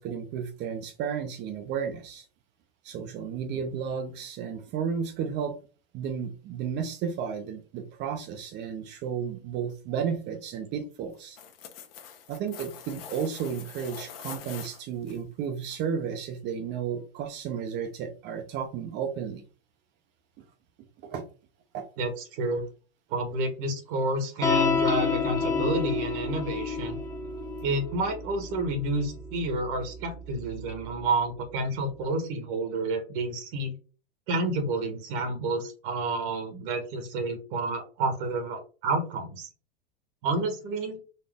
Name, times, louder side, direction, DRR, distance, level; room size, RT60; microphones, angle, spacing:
voice 1, 0.0-2.2 2.8-5.6 5.9-11.4 12.3-19.4 21.0-21.2 21.7-21.8, right 7 dB, 35° right, 8 dB, 0.7 m, -33 dB
sound 1, 11.1-15.2 15.7-15.8, left 8 dB, 70° left, 1.1 m, -44 dB
voice 2, 22.0-22.6 23.1-27.0 27.6-33.7 34.3-39.5 40.2-41.0, right 2 dB, 60° right, 7 dB, 1.2 m, -29 dB
sound 2, 24.4-31.1, left 4 dB, 10° left, 0.8 m, -30 dB
4.3 x 2.6 x 3.4 m, 0.36 s
supercardioid pair, 125°, 30 cm